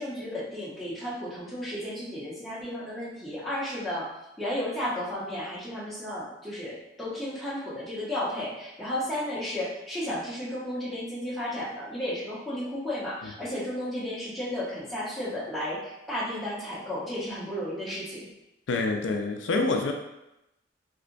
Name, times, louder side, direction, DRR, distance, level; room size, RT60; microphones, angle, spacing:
voice 1, 0.0-4.1 4.4-15.8 16.1-18.3, left 1 dB, ahead, -9 dB, 0.9 m, -33 dB
voice 2, 18.7-19.9, left 3 dB, 80° left, 3 dB, 0.4 m, -27 dB
3.2 x 2.8 x 2.5 m, 0.89 s
head